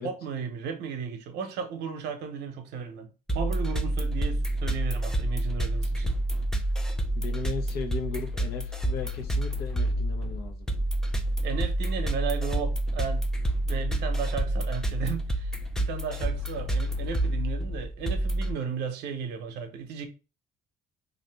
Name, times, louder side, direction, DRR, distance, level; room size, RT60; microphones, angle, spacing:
voice 1, 0.0-6.2 11.4-13.3 13.6-15.5 15.8-20.1, right 6 dB, 80° right, 0.7 m, -35 dB
sound 1, 3.3-18.5, right 1 dB, 5° left, 0.4 m, -28 dB
voice 2, 7.1-10.7, left 4 dB, 70° left, 0.8 m, -36 dB
2.7 x 2.5 x 3.3 m
cardioid pair, 110°, 17 cm